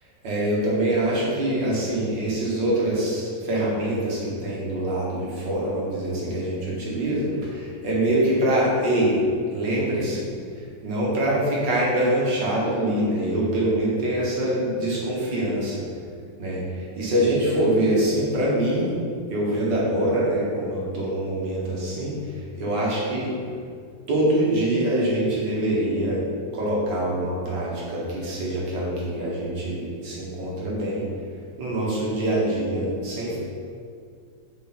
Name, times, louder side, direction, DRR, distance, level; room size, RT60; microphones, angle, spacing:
voice 1, 0.2-9.2 9.5-10.3 10.8-15.9 16.4-18.9 19.3-23.3 24.1-26.3 26.5-31.1 31.6-33.4, right 1 dB, 80° right, -5 dB, 2.0 m, -24 dB
6.3 x 4.8 x 4.3 m, 2.2 s
omnidirectional pair, 1.9 m